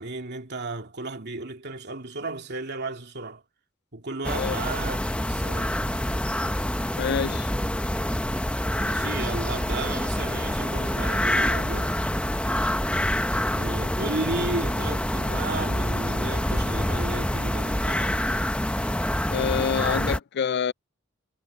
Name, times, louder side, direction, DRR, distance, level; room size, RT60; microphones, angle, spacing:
voice 1, 0.0-3.4 3.9-5.9 8.8-12.0 13.6-18.2, right 3 dB, 55° right, 2.6 m, -34 dB
sound 1, 4.2-20.2, left 1 dB, 5° left, 0.9 m, -26 dB
voice 2, 7.0-7.5 19.3-20.7, left 7 dB, 55° left, 0.4 m, -26 dB
head